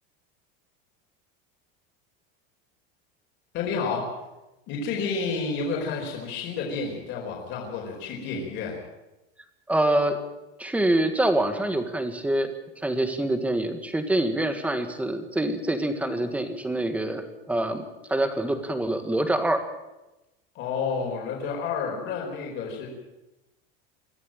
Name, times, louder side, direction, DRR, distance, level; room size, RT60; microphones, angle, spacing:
voice 1, 3.5-4.1 4.7-8.8 20.5-22.9, left 5 dB, 40° left, -1 dB, 4.6 m, -30 dB
voice 2, 9.7-10.2 10.6-19.7, right 1 dB, 5° right, 8 dB, 1.7 m, -26 dB
23.5 x 14.5 x 9.0 m, 0.99 s
cardioid pair, 165°, 29 cm